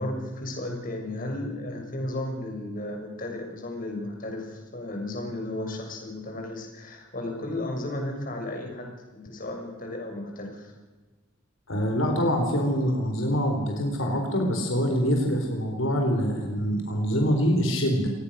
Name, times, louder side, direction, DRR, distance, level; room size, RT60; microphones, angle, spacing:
voice 1, 0.0-10.7, left 1 dB, 45° left, 2 dB, 6.7 m, -34 dB
voice 2, 11.7-18.1, equal, 85° left, 2 dB, 4.5 m, -25 dB
27.5 x 19.5 x 6.6 m, 1.2 s
head